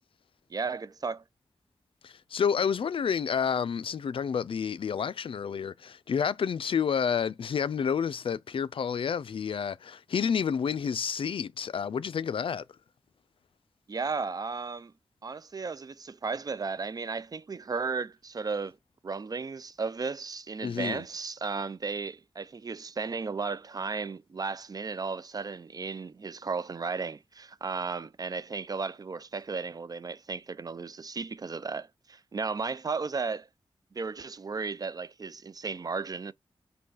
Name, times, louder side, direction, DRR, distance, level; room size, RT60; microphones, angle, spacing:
voice 1, 0.5-1.2 13.9-14.9 15.2-18.8 19.0-33.5 33.9-36.3, right 4 dB, 40° right, 0.4 m, -34 dB
voice 2, 2.0-12.6 20.6-21.0, left 7 dB, 65° left, 0.4 m, -29 dB
5.2 x 2.3 x 4.0 m
cardioid pair, 65°, 10 cm